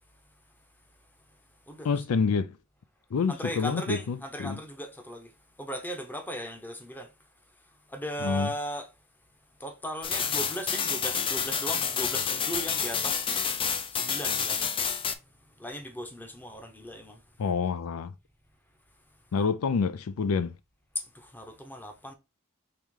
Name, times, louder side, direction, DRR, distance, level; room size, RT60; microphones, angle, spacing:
voice 1, 1.8-2.5 3.1-4.6 8.2-8.5 17.4-18.1 19.3-20.6, left 5 dB, 85° left, 0.4 m, -27 dB
voice 2, 3.3-5.3 5.6-7.1 7.9-8.9 9.6-13.4 13.9-14.7 15.6-17.2 21.0-22.1, equal, 10° left, 0.8 m, -37 dB
sound 1, 10.0-15.1, left 6 dB, 25° left, 0.4 m, -29 dB
4.9 x 3.0 x 3.6 m
head